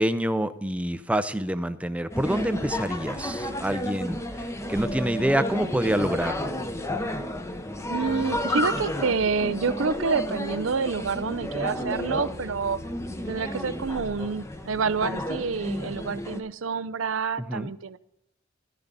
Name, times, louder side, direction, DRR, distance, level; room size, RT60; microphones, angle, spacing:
voice 1, 0.0-4.2 4.7-6.5 17.4-17.7, right 1 dB, 5° right, 11 dB, 0.6 m, -26 dB
sound 1, 2.1-16.4, left 1 dB, 15° left, 0.9 m, -32 dB
voice 2, 7.9-12.8 13.3-18.0, right 5 dB, 80° right, 15 dB, 0.6 m, -28 dB
14.0 x 12.0 x 4.1 m, 0.80 s
head